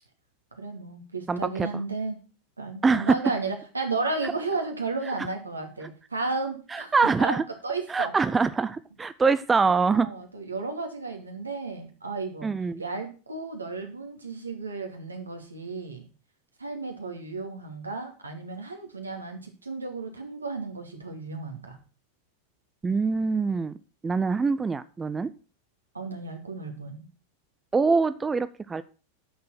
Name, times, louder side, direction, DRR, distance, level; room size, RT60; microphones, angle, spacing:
voice 1, 0.6-2.2 2.6-8.1 9.9-12.5 12.8-16.0 16.6-21.8 25.9-27.0, right 3 dB, 80° right, 3 dB, 2.4 m, -33 dB
voice 2, 1.3-1.7 2.8-3.2 4.2-4.3 6.7-7.4 7.9-10.1 12.4-12.8 22.8-23.7 24.0-25.3 27.7-28.8, right 4 dB, 15° right, 14 dB, 0.5 m, -24 dB
10.0 x 6.7 x 5.9 m, 0.36 s
figure-of-eight pair, 90°, 0 cm